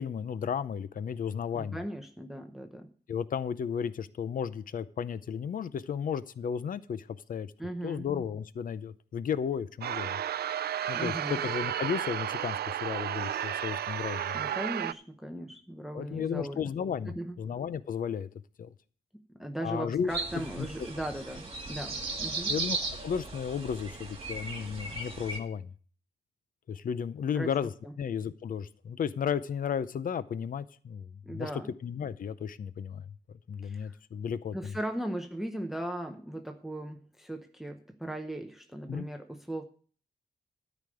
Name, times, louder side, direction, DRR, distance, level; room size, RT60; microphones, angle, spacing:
voice 1, 0.0-1.8 3.1-7.5 7.8-10.2 10.9-14.4 15.9-18.3 18.6-18.7 19.6-20.1 20.6-20.7 22.5-25.7 26.7-27.7 28.0-31.5 31.8-33.1 33.5-34.7 38.9-39.1, left 7 dB, 50° left, 15 dB, 0.6 m, -34 dB
voice 2, 1.5-2.9 7.6-8.1 10.9-11.4 14.3-16.6 17.1-17.4 19.1-22.6 27.3-27.5 27.8-27.9 31.2-31.7 33.6-33.9 34.5-39.6, right 1 dB, ahead, 5 dB, 0.7 m, -38 dB
sound 1, 9.8-14.9, right 10 dB, 65° right, 0.4 m, -33 dB
sound 2, 20.1-25.4, right 3 dB, 30° right, 2.1 m, -36 dB
13.0 x 5.2 x 7.7 m, 0.43 s
wide cardioid pair, 160°, 18 cm